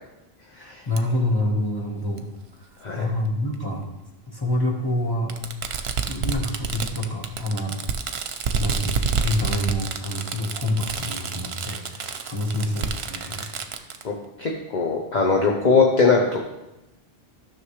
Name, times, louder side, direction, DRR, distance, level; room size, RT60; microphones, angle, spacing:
voice 1, 0.5-2.3 2.9-3.9 4.3-5.4 6.0-7.8 8.1-13.6, left 1 dB, 20° left, -1 dB, 1.5 m, -27 dB
Fireworks, 1.0-1.1 2.2-2.3 3.5-3.6 5.3-14.0, right 6 dB, 75° right, 0.9 m, -28 dB
voice 2, 14.4-16.4, left 4 dB, 45° left, 0 dB, 1.0 m, -20 dB
13.0 x 6.3 x 3.3 m, 0.96 s
omnidirectional pair, 1.1 m